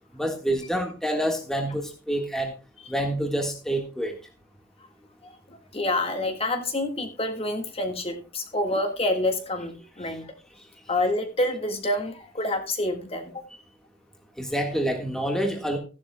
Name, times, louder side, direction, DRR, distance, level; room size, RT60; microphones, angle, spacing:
voice 1, 0.1-2.5 2.9-4.2 14.4-15.8, right 1 dB, 5° left, 3 dB, 1.6 m, -27 dB
voice 2, 5.2-10.3 10.9-13.4, left 1 dB, 30° left, 5 dB, 1.7 m, -28 dB
15.5 x 11.5 x 2.2 m, 0.32 s
head